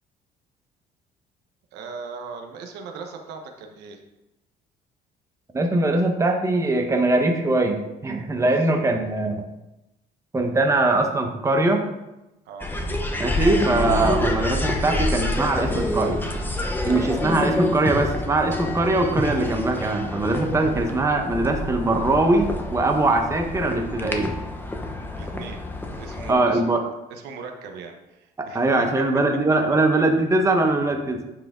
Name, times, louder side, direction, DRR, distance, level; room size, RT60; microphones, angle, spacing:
voice 1, 1.7-4.0 8.5-8.6 12.5-12.7 25.2-25.6 26.0-26.8 27.1-29.0, right 5 dB, 85° right, 4 dB, 1.0 m, -39 dB
voice 2, 5.5-9.4 10.3-11.9 13.2-16.2 16.9-24.3 25.3-25.4 26.3-26.9 28.4-31.2, right 2 dB, 15° right, 3 dB, 1.1 m, -21 dB
sound 1, 12.6-26.3, left 1 dB, 10° left, 0.9 m, -28 dB
9.1 x 4.9 x 3.8 m, 0.95 s
cardioid pair, 110°, 17 cm